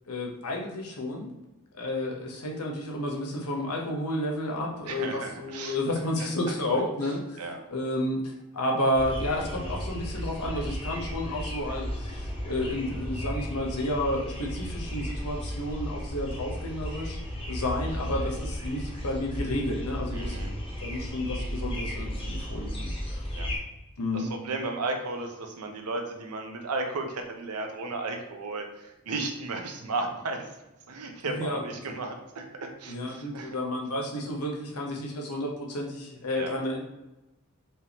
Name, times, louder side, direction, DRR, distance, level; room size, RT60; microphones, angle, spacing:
voice 1, 0.1-1.3 1.7-7.4 7.7-17.2 17.5-20.5 20.8-22.9 24.0-24.3 31.3-31.8 32.9-36.8, left 1 dB, 85° left, 0 dB, 0.9 m, -31 dB
voice 2, 4.9-5.8 6.2-6.5 7.4-7.6 20.1-20.5 23.3-23.5 24.1-30.4 30.9-33.6 36.3-36.6, right 3 dB, 85° right, 4 dB, 0.7 m, -34 dB
sound 1, 8.9-23.6, equal, 25° left, 0.9 m, -34 dB
4.4 x 3.4 x 2.9 m, 0.98 s
head